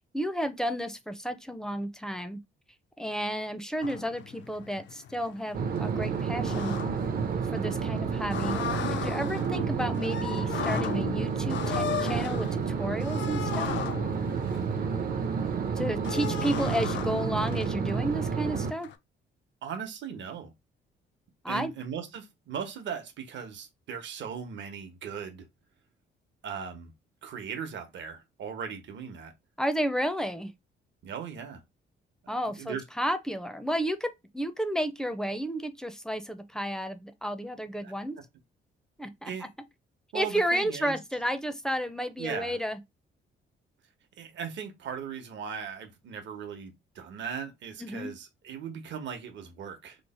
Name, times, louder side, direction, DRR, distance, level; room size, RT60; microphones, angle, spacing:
voice 1, 0.1-2.4 3.0-6.8 7.5-8.6 8.9-13.7 15.8-18.9 21.4-21.7 29.6-30.5 32.3-38.2 39.0-39.3 40.1-42.8 47.8-48.1, equal, 5° left, 0.5 m, -32 dB
sound 1, 3.8-18.9, left 9 dB, 65° left, 0.5 m, -37 dB
sound 2, 5.5-18.7, right 6 dB, 50° right, 0.6 m, -30 dB
voice 2, 19.6-20.5 21.5-25.4 26.4-26.9 27.2-29.3 31.0-31.6 32.2-32.8 37.8-37.9 39.3-39.5 40.1-41.0 42.2-42.6 44.2-50.0, right 7 dB, 70° right, 0.9 m, -38 dB
3.0 x 2.1 x 4.1 m
cardioid pair, 90°, 20 cm